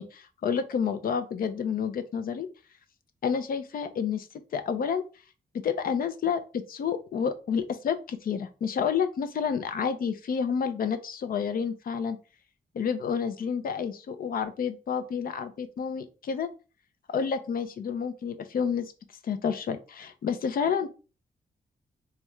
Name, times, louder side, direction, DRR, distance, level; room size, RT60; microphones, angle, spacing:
voice 1, 0.0-2.5 3.2-4.3 4.5-5.0 5.5-12.2 12.7-16.5 17.1-18.9 19.2-20.9, left 6 dB, 70° left, 10 dB, 0.6 m, -29 dB
4.1 x 2.4 x 3.1 m, 0.33 s
cardioid pair, 95°, 16 cm